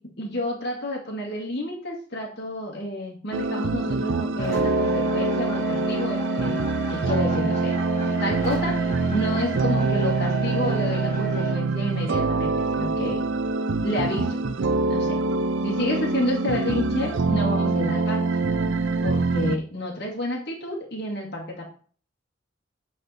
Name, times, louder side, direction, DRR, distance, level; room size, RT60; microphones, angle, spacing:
voice 1, 0.2-6.6 6.9-7.7 8.2-8.8 9.1-13.2 13.8-14.4 14.9-15.1 15.6-18.4 19.0-21.6, left 1 dB, 55° left, -3 dB, 2.1 m, -30 dB
sound 1, 3.3-19.6, right 3 dB, 75° right, 0.5 m, -25 dB
sound 2, 4.4-11.5, right 3 dB, 15° left, 2.5 m, -33 dB
8.8 x 4.3 x 4.2 m, 0.43 s
head